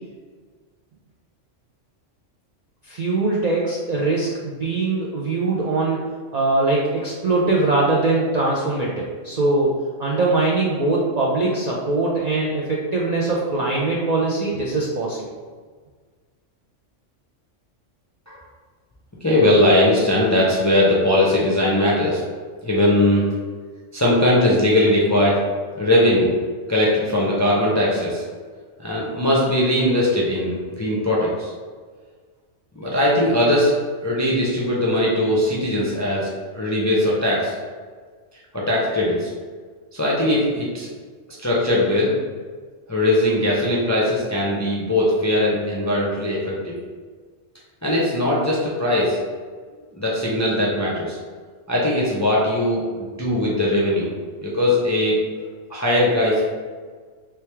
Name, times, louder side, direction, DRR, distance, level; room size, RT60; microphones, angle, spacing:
voice 1, 2.8-6.0 6.3-9.7 10.0-15.3, right 2 dB, 55° right, -4 dB, 0.4 m, -22 dB
voice 2, 19.2-22.2 22.6-23.3 23.9-25.4 25.7-26.3 26.7-28.2 28.8-31.5 32.8-33.7 34.0-37.6 38.5-39.3 39.9-40.9 41.4-42.1 42.9-46.8 47.8-49.2 49.9-51.2 51.7-54.1 54.4-55.2 55.7-56.5, left 1 dB, 25° left, -5 dB, 0.4 m, -20 dB
3.3 x 3.3 x 3.3 m, 1.5 s
omnidirectional pair, 1.2 m